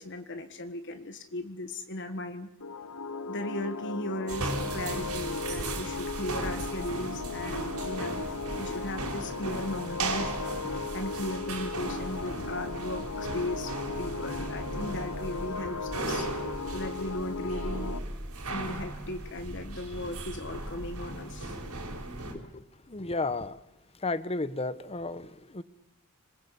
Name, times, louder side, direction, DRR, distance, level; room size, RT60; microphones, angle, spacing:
voice 1, 0.0-2.5 3.3-8.2 8.6-10.4 10.9-16.3 16.7-18.0 18.5-21.6, left 1 dB, 55° left, 7 dB, 1.6 m, -37 dB
sound 1, 2.6-18.0, left 4 dB, 80° left, 1.1 m, -37 dB
sound 2, 4.3-22.3, right 2 dB, 90° right, 5.9 m, -37 dB
voice 2, 22.3-23.6 23.9-25.6, left 3 dB, 25° left, 14 dB, 1.1 m, -34 dB
26.0 x 21.5 x 8.4 m, 0.84 s
head